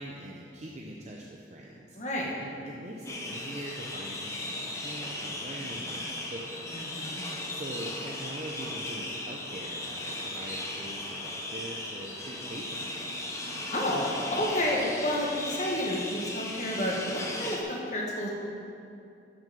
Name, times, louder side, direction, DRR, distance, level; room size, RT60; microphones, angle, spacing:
voice 1, 0.0-2.0 2.4-13.3, right 1 dB, 35° right, -2 dB, 0.7 m, -43 dB
voice 2, 1.9-2.3 6.7-7.2 13.7-18.3, left 1 dB, 40° left, -3 dB, 1.8 m, -30 dB
sound 1, 3.0-17.6, left 1 dB, 15° left, 1.0 m, -37 dB
12.5 x 6.3 x 5.3 m, 2.6 s
head